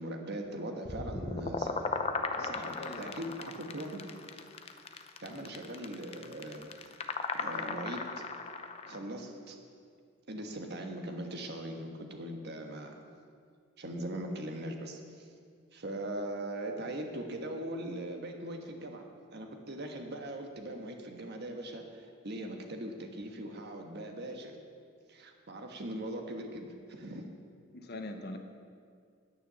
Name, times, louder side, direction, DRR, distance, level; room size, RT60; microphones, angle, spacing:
voice 1, 0.0-1.9 2.4-4.1 5.2-6.7 7.3-8.1 8.9-9.6 10.3-12.9 13.8-15.3 15.7-19.1 19.3-24.6 25.1-27.4, right 1 dB, 55° right, 3 dB, 1.4 m, -40 dB
sound 1, 0.8-9.0, left 4 dB, 30° left, 0.7 m, -37 dB
voice 2, 2.3-3.2 5.3-5.4 27.7-28.4, left 2 dB, 55° left, 6 dB, 1.0 m, -43 dB
10.0 x 9.2 x 6.9 m, 2.2 s
head